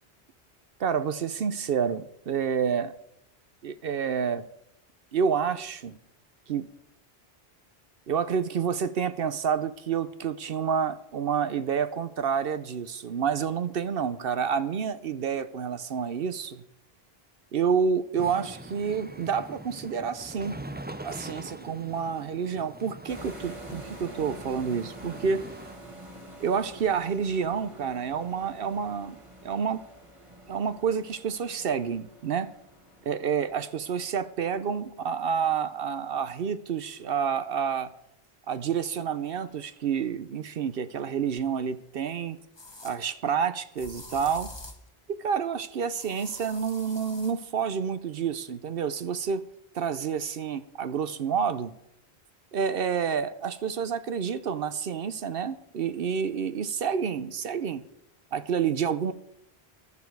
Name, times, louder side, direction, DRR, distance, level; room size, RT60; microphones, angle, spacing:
voice 1, 0.8-2.9 3.6-4.4 5.1-6.0 6.5-6.7 8.1-16.6 17.5-20.6 21.0-25.5 26.4-29.2 29.4-29.8 30.5-32.5 33.1-37.9 38.5-42.4 42.8-44.5 45.1-49.5 49.7-51.7 52.5-57.8 58.3-59.1, right 7 dB, 65° right, 0.9 m, -29 dB
sound 1, 18.1-25.7, right 1 dB, 10° right, 0.6 m, -43 dB
sound 2, 23.1-35.2, right 1 dB, 30° right, 1.8 m, -47 dB
sound 3, 41.4-41.5 42.6-43.0 43.8-44.9 46.0-47.4, left 2 dB, 25° left, 1.3 m, -45 dB
15.5 x 12.0 x 4.7 m
omnidirectional pair, 1.1 m